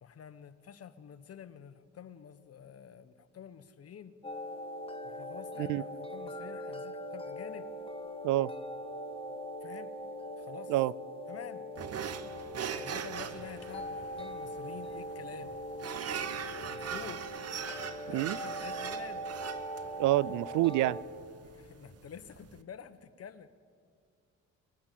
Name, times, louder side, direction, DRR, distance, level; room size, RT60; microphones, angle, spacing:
voice 1, 0.0-4.1 5.0-7.7 9.6-9.9 10.4-10.7 11.3-11.6 12.7-15.6 16.7-17.2 18.0-19.3 21.4-23.5, left 8 dB, 50° left, 1.3 m, -48 dB
sound 1, 4.2-21.0, equal, 20° left, 1.9 m, -41 dB
sound 2, 11.8-22.6, right 8 dB, 55° right, 1.1 m, -41 dB
voice 2, 20.0-21.0, right 16 dB, 85° right, 0.5 m, -27 dB
23.0 x 21.0 x 7.6 m
cardioid pair, 90°, 30 cm